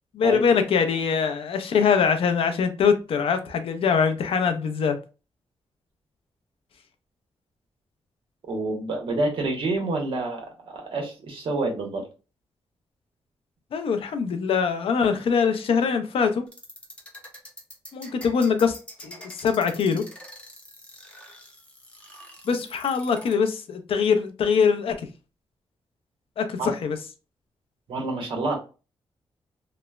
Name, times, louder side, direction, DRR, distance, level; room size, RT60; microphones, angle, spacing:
voice 1, 0.1-5.0 13.7-16.4 17.9-18.8 19.0-20.1 22.5-25.1 26.4-27.0, left 6 dB, 70° left, 0.4 m, -23 dB
voice 2, 8.5-12.0 26.6-26.7 27.9-28.6, right 2 dB, 65° right, 1.0 m, -28 dB
sound 1, 16.5-23.3, left 1 dB, 10° left, 0.7 m, -44 dB
3.0 x 2.0 x 2.2 m
wide cardioid pair, 125°, 10 cm